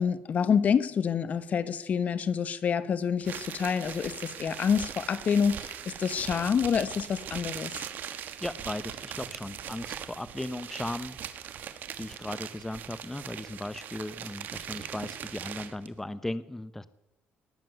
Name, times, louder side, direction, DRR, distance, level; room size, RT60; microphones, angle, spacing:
voice 1, 0.0-7.7, left 7 dB, 50° left, 15 dB, 1.0 m, -27 dB
sound 1, 3.2-15.9, right 9 dB, 60° right, 1.4 m, -40 dB
voice 2, 8.4-16.9, left 1 dB, 10° left, 15 dB, 0.8 m, -37 dB
18.5 x 7.5 x 9.3 m, 0.88 s
cardioid pair, 95°, 3 cm